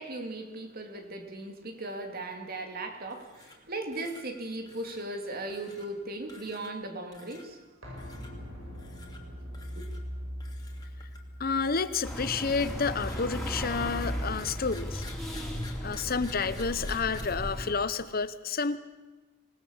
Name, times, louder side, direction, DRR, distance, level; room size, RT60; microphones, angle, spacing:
voice 1, 0.0-7.6 9.7-9.8, right 2 dB, 50° right, 5 dB, 2.7 m, -38 dB
sound 1, 3.1-3.7 3.9-4.2 4.6-5.1 5.5-5.9 6.3-6.8 7.1-7.5 8.0-8.3 8.7-9.2 9.5-10.0 10.4-11.3 11.7-17.2, left 3 dB, 20° left, 2.8 m, -51 dB
sound 2, 7.8-13.5 13.8-13.9, equal, 85° right, 8.0 m, -42 dB
voice 2, 11.4-15.0 15.8-18.8, left 5 dB, 45° left, 13 dB, 0.9 m, -30 dB
sound 3, 12.0-17.7, equal, ahead, 4.0 m, -35 dB
26.0 x 19.0 x 7.2 m, 1.2 s
head